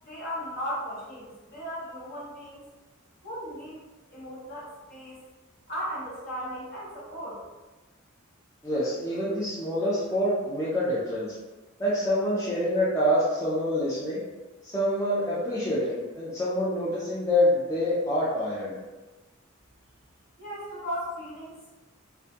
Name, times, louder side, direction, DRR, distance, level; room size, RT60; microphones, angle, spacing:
voice 1, 0.0-2.7 3.2-3.8 4.1-5.2 5.7-7.4 20.4-21.7, equal, 50° left, -7 dB, 0.9 m, -36 dB
voice 2, 8.6-11.3 11.8-14.2 14.6-18.8, left 1 dB, 15° left, -9 dB, 0.4 m, -26 dB
2.2 x 2.1 x 2.7 m, 1.2 s
head